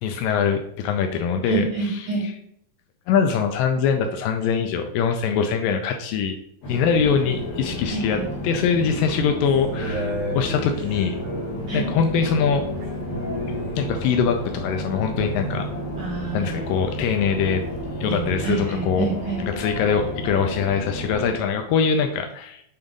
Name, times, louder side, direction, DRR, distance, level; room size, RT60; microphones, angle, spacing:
voice 1, 0.0-1.6 3.1-6.4 6.7-8.2 8.4-11.2 11.7-12.7 13.8-15.7 16.3-17.6 18.0-19.1 19.4-22.6, left 6 dB, 80° left, 5 dB, 2.1 m, -23 dB
voice 2, 1.4-2.3 6.7-6.8 7.9-8.3 11.7-11.9 16.0-16.6 18.0-19.4, right 5 dB, 70° right, -5 dB, 1.1 m, -28 dB
sound 1, 6.6-21.3, left 1 dB, 60° left, 2.0 m, -32 dB
sound 2, 9.5-14.3 15.0-15.6, right 1 dB, 85° right, 3.0 m, -34 dB
7.1 x 3.8 x 3.6 m, 0.73 s
omnidirectional pair, 4.1 m